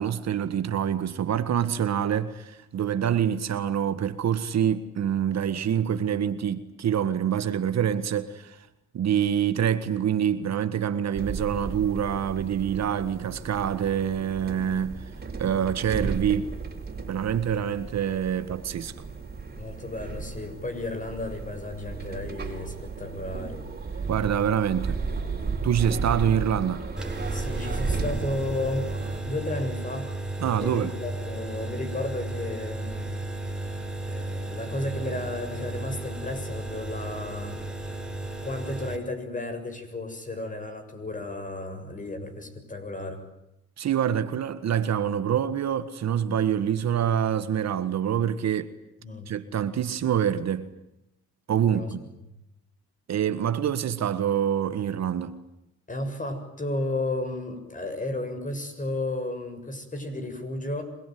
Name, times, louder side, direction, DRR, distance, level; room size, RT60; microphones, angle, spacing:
voice 1, 0.0-8.7 8.9-15.0 15.3-16.5 17.1-18.9 24.1-25.0 25.6-26.9 30.4-30.9 43.8-48.7 49.3-50.7 51.5-52.0 53.1-55.3, right 9 dB, 60° right, 1.7 m, -26 dB
sound 1, 11.2-29.2, right 4 dB, 30° right, 4.9 m, -34 dB
voice 2, 19.6-23.6 27.3-30.1 30.6-33.3 34.1-37.7 38.4-43.2 49.0-49.4 51.7-51.9 55.9-60.8, left 2 dB, 25° left, 7.0 m, -33 dB
sound 2, 27.0-39.0, right 2 dB, 5° right, 5.3 m, -34 dB
27.0 x 21.0 x 9.5 m
cardioid pair, 90°, 30 cm